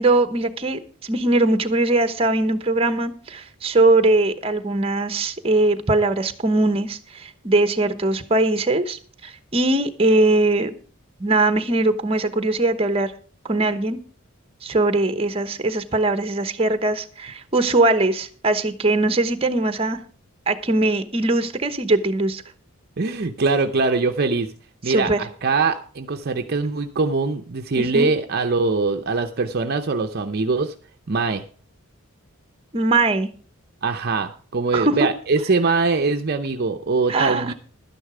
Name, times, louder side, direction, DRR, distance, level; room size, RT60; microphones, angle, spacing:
voice 1, 0.0-10.7 11.2-13.1 13.4-14.0 14.6-20.0 20.5-22.4 24.9-25.2 27.8-28.1 32.7-33.3 34.7-35.0 37.1-37.5, right 2 dB, 25° right, 9 dB, 1.0 m, -21 dB
voice 2, 23.0-24.5 24.8-30.7 31.1-31.4 33.8-37.5, right 3 dB, 45° right, 6 dB, 0.7 m, -22 dB
12.0 x 10.0 x 4.9 m, 0.41 s
head